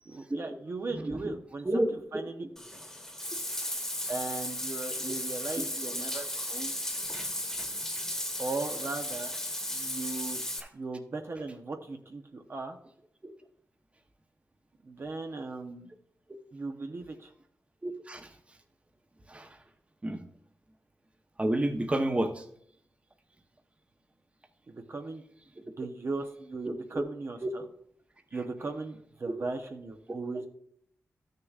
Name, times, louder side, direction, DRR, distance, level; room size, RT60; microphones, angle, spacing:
voice 1, 0.1-1.8 2.1-2.4 4.1-6.8 8.4-9.3 9.7-10.4 10.7-12.8 14.8-15.9 16.5-17.3 24.7-25.2 25.6-27.6 28.3-30.5, right 3 dB, 50° right, 4 dB, 0.7 m, -37 dB
voice 2, 1.0-1.3 1.6-2.2 5.0-5.1 13.2-13.3 17.8-18.3 19.3-19.6 20.0-20.2 21.4-22.4 26.9-27.0 27.4-27.5, right 1 dB, 20° right, 5 dB, 0.9 m, -30 dB
Bathtub (filling or washing), 2.6-10.6, left 1 dB, 10° left, 1.2 m, -35 dB
13.0 x 6.6 x 2.4 m, 0.67 s
wide cardioid pair, 85°, 5 cm